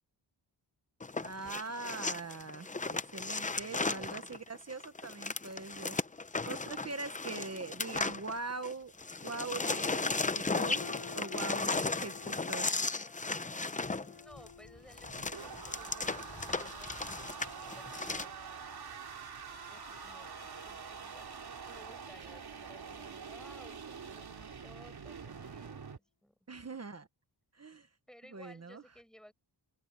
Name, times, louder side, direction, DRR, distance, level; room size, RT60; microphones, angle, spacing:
sound 1, 1.0-8.7 9.0-18.2, left 3 dB, 15° left, 0.6 m, -36 dB
voice 1, 1.2-6.0 6.5-8.9 9.2-10.8 11.1-12.9 26.5-27.1 27.5-27.9 28.3-28.8, right 3 dB, 35° right, 1.2 m, -42 dB
sound 2, 10.8-25.2, left 6 dB, 70° left, 6.2 m, -57 dB
voice 2, 14.1-17.1 17.7-18.5 19.7-26.4 28.1-29.3, equal, ahead, 7.1 m, -58 dB
sound 3, 14.7-26.0, right 6 dB, 55° right, 2.5 m, -46 dB
open air
wide cardioid pair, 175°, 45 cm